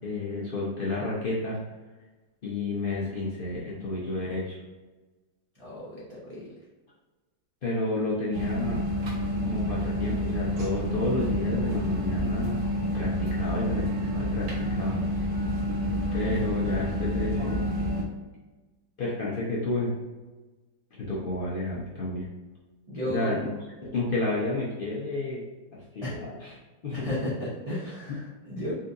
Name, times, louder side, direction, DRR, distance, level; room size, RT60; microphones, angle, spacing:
voice 1, 0.0-1.6 2.4-4.6 7.6-8.8 9.4-12.6 12.9-15.0 16.1-17.6 19.0-19.9 20.9-22.3 23.0-23.5 23.8-25.4 25.7-26.5 26.8-27.1 28.1-28.2, left 2 dB, 70° left, -7 dB, 0.5 m, -31 dB
voice 2, 5.5-6.5 22.9-23.4 26.0-26.2 26.9-28.7, equal, 45° right, -9 dB, 0.4 m, -33 dB
sound 1, 8.3-18.0, left 1 dB, 65° right, 1.2 m, -28 dB
4.1 x 2.7 x 2.6 m, 1.2 s
omnidirectional pair, 1.9 m